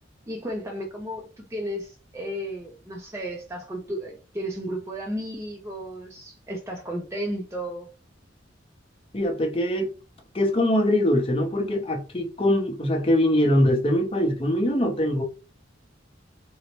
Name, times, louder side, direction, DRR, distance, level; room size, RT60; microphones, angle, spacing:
voice 1, 0.3-7.9, equal, 15° right, 0.5 m, -33 dB
voice 2, 9.1-9.9 10.3-15.2, left 1 dB, 30° left, 0.7 m, -22 dB
3.9 x 2.1 x 2.9 m
head